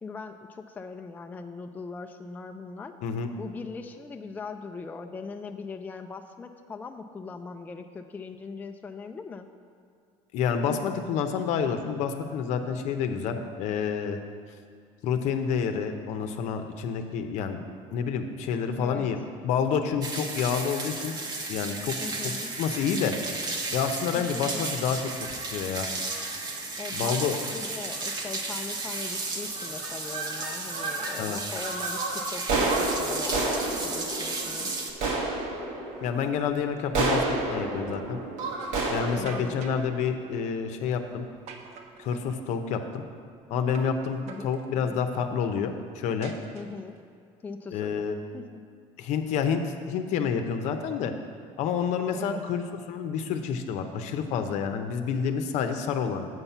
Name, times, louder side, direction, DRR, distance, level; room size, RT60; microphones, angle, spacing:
voice 1, 0.0-2.9 3.4-9.5 18.7-19.1 22.0-22.5 24.1-24.6 26.8-34.7 39.2-39.7 44.3-44.5 44.8-45.0 46.5-47.0 47.4-48.0 48.3-48.6 52.1-52.4, left 4 dB, 15° left, 5 dB, 0.3 m, -40 dB
voice 2, 10.3-14.2 15.0-17.6 17.9-19.2 19.4-21.2 21.5-21.9 22.2-22.3 22.6-23.1 23.7-25.9 26.9-27.4 31.2-31.4 36.0-38.2 38.9-41.3 42.0-43.0 43.5-46.3 47.7-48.1 49.0-51.1 51.6-56.3, left 6 dB, 65° left, 7 dB, 0.7 m, -28 dB
sound 1, 20.0-34.9, right 3 dB, 30° right, 0.9 m, -34 dB
sound 2, 25.1-25.5 26.0-26.3 27.0-27.2 27.5-27.6 27.9-28.3 28.9-29.2 29.5-31.2 31.6-40.7, right 2 dB, 75° right, 1.4 m, -31 dB
sound 3, 39.3-39.9 41.5-42.4 43.7-44.0 44.3-45.0 46.2-47.0, right 5 dB, 55° right, 0.8 m, -45 dB
7.9 x 5.8 x 5.5 m, 2.2 s
cardioid pair, 125°, 13 cm